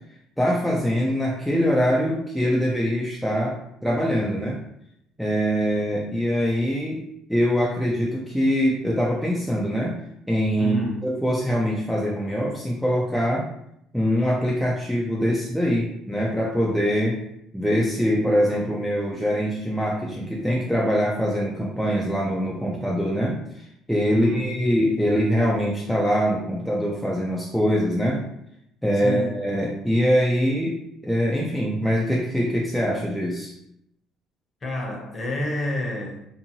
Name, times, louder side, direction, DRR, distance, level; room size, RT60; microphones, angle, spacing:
voice 1, 0.4-4.6 5.2-7.0 7.3-10.0 10.3-13.5 13.9-17.2 17.5-28.2 28.8-33.5, equal, ahead, -4 dB, 0.3 m, -23 dB
voice 2, 10.6-11.0 24.1-24.4 29.0-29.4 34.6-36.2, left 1 dB, 25° left, -1 dB, 0.7 m, -29 dB
2.6 x 2.6 x 2.7 m, 0.77 s
cardioid pair, 145°, 0 cm